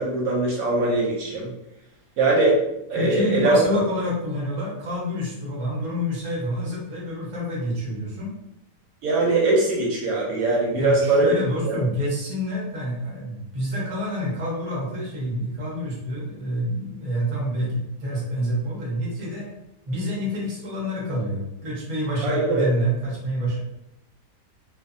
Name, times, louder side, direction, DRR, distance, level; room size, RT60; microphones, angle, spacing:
voice 1, 0.0-1.5 2.2-2.6 2.9-3.8 9.0-11.3 11.6-11.8 22.2-22.7, right 2 dB, 70° right, -2 dB, 1.0 m, -21 dB
voice 2, 2.9-8.3 10.7-19.5 19.9-23.6, equal, 35° right, -5 dB, 0.5 m, -27 dB
2.5 x 2.3 x 2.5 m, 0.87 s
omnidirectional pair, 1.8 m